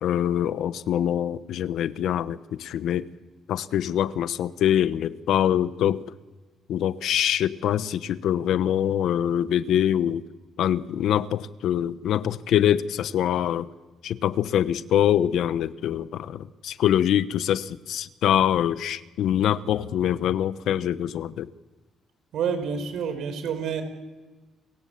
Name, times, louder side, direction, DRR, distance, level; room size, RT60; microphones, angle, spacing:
voice 1, 0.0-3.1 3.5-6.0 6.7-10.2 10.6-13.7 14.0-21.5, left 10 dB, 80° left, 14 dB, 1.0 m, -24 dB
voice 2, 22.3-23.8, right 7 dB, 75° right, 9 dB, 5.2 m, -28 dB
29.5 x 21.5 x 8.6 m, 1.2 s
cardioid pair, 90°, 0 cm